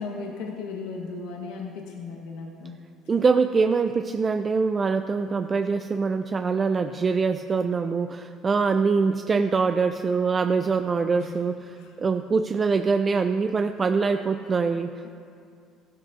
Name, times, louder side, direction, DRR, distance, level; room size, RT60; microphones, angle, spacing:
voice 1, 0.0-2.8 11.3-11.4, left 4 dB, 90° left, -1 dB, 1.3 m, -35 dB
voice 2, 3.1-14.9, right 4 dB, 30° right, 7 dB, 0.4 m, -24 dB
15.5 x 12.5 x 2.6 m, 2.4 s
cardioid pair, 105°, 0 cm